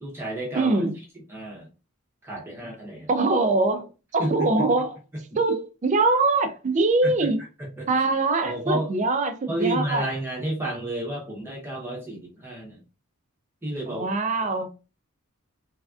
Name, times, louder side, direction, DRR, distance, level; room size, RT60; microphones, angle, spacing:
voice 1, 0.0-0.8 1.3-1.7 2.2-3.1 4.2-4.5 7.0-7.3 7.8-7.9 8.4-8.9 9.5-12.8 13.6-14.1 14.4-14.5, right 1 dB, 10° right, 0.7 m, -31 dB
voice 2, 0.5-0.9 3.1-5.0 5.4-7.4 7.9-10.1 13.9-14.7, right 3 dB, 35° right, 0.4 m, -23 dB
3.3 x 2.4 x 2.3 m
head